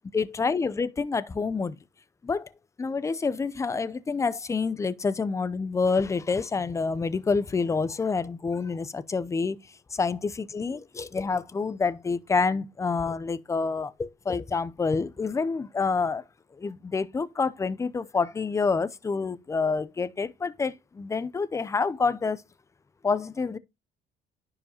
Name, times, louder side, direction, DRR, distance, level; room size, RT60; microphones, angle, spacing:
voice 1, 0.1-1.8 2.2-2.5 2.8-9.6 9.9-16.2 16.6-22.4 23.0-23.6, left 4 dB, 15° left, 0.5 m, -28 dB
10.0 x 4.7 x 2.8 m
cardioid pair, 110°, 17 cm